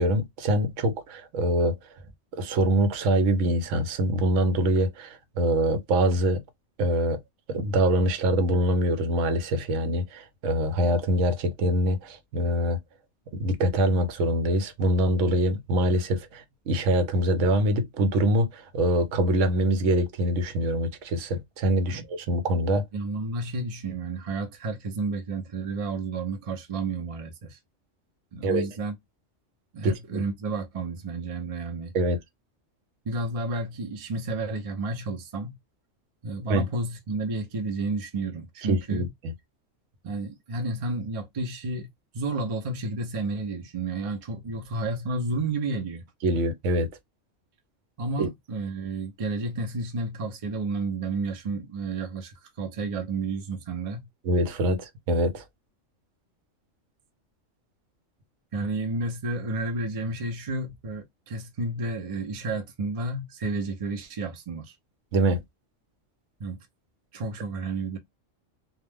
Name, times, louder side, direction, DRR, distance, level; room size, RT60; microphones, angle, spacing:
voice 1, 0.0-1.8 2.3-6.4 6.8-7.2 7.5-12.8 13.3-22.9 28.4-28.7 29.8-30.2 31.9-32.2 36.5-36.7 38.7-39.1 46.2-46.9 48.2-48.3 54.2-55.4 65.1-65.4, right 1 dB, 75° right, 1.0 m, -24 dB
voice 2, 22.9-27.6 28.3-28.9 29.7-31.9 33.1-35.6 36.2-39.1 40.0-41.9 42.1-46.0 48.0-54.1 58.5-64.8 66.4-66.6 67.1-68.0, right 3 dB, 45° right, 0.4 m, -31 dB
2.4 x 2.1 x 3.3 m
omnidirectional pair, 1.3 m